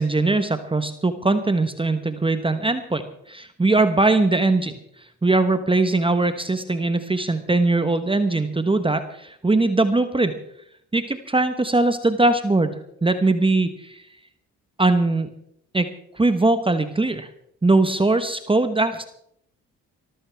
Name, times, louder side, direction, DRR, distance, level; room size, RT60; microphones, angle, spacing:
voice 1, 0.0-10.3 10.9-14.0 14.8-15.3 15.7-17.3 17.6-19.0, right 2 dB, 15° right, 9 dB, 1.2 m, -21 dB
23.0 x 14.5 x 3.5 m, 0.72 s
supercardioid pair, 70°, 32 cm